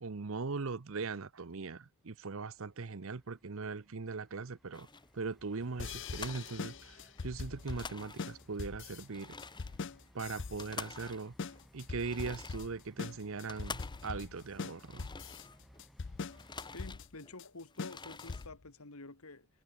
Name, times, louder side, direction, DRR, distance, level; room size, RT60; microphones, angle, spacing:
voice 1, 0.0-4.9 5.1-9.4 10.1-11.3 11.7-15.1, right 4 dB, 60° right, 0.8 m, -40 dB
sound 1, 2.6-16.9, equal, ahead, 2.9 m, -62 dB
sound 2, 4.7-5.2 5.6-5.7 6.0-7.3 7.5-8.6 9.0-15.8 16.2-17.4 17.7-18.5, left 4 dB, 20° left, 1.8 m, -48 dB
sound 3, 5.8-18.7, left 4 dB, 55° left, 0.6 m, -42 dB
voice 2, 16.7-19.5, left 2 dB, 75° left, 2.2 m, -49 dB
head